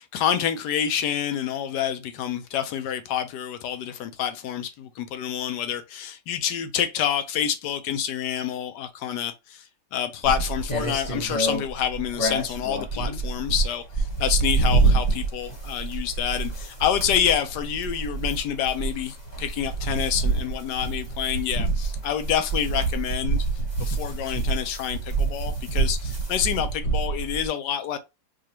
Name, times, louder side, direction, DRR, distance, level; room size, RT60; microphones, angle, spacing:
voice 1, 0.0-23.5 23.8-28.0, left 9 dB, 75° left, 1.0 m, -27 dB
sound 1, 10.2-27.5, right 3 dB, 25° left, 1.1 m, -27 dB
4.9 x 2.4 x 2.9 m
omnidirectional pair, 2.2 m